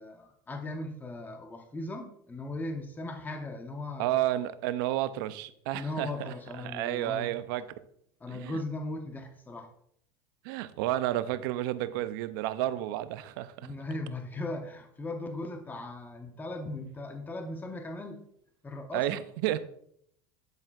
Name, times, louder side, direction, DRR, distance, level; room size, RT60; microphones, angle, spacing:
voice 1, 0.0-4.1 5.7-7.3 8.2-9.7 13.6-18.2 18.6-19.2, left 2 dB, 15° left, 0.8 m, -38 dB
voice 2, 4.0-7.7 8.3-8.6 10.4-13.7 18.9-19.6, right 14 dB, 80° right, 0.5 m, -31 dB
11.0 x 4.4 x 2.4 m
supercardioid pair, 115°, 12 cm